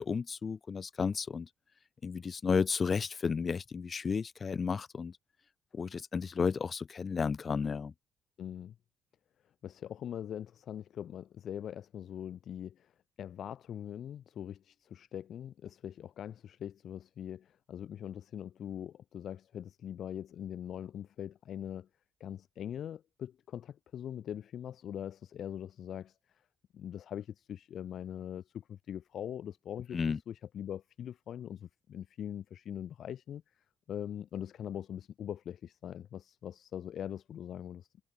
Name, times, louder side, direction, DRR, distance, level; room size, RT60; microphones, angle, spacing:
voice 1, 0.0-1.5 2.0-5.1 5.7-7.9 29.9-30.2, left 5 dB, 35° left, 0.4 m, -32 dB
voice 2, 8.4-8.7 9.6-12.9 13.2-21.9 22.2-26.2 26.7-33.4 33.9-37.9, left 9 dB, 65° left, 4.0 m, -42 dB
cardioid pair, 110°, 0 cm